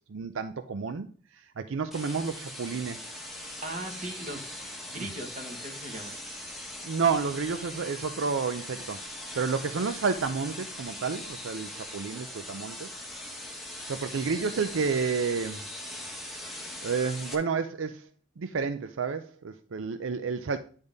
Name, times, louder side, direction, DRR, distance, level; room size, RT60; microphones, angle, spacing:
voice 1, 0.1-1.1 1.3-3.1 4.9-5.1 6.8-9.0 9.4-12.9 13.9-15.6 16.8-18.1 18.4-20.6, right 5 dB, 80° right, 0.5 m, -30 dB
sound 1, 1.9-17.3, left 1 dB, ahead, 1.1 m, -41 dB
voice 2, 3.4-4.5 4.9-6.2, right 1 dB, 40° right, 1.4 m, -39 dB
9.8 x 3.6 x 5.2 m
head